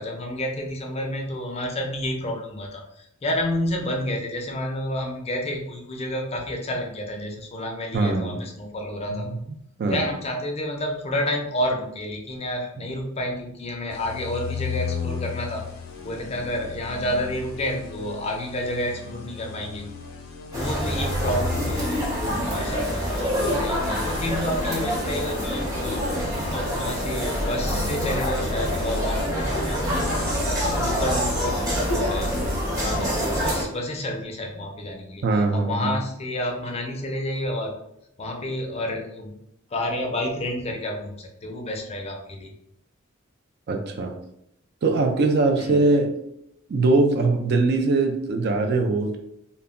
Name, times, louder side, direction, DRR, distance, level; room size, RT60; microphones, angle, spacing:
voice 1, 0.0-9.3 9.9-15.6 16.0-19.9 20.5-26.0 26.5-30.4 30.7-32.3 32.7-37.8 38.2-39.4 39.7-42.5 45.5-45.8, left 1 dB, 30° left, 2 dB, 0.4 m, -30 dB
voice 2, 7.9-8.4 9.1-9.2 9.8-10.0 35.2-36.0 43.7-44.1 44.8-46.1 46.7-49.2, right 3 dB, 55° right, 4 dB, 0.4 m, -21 dB
sound 1, 13.9-32.6, left 5 dB, 85° left, 0.5 m, -36 dB
sound 2, 20.5-33.6, equal, 15° right, 0.8 m, -26 dB
2.1 x 2.0 x 3.6 m, 0.78 s
head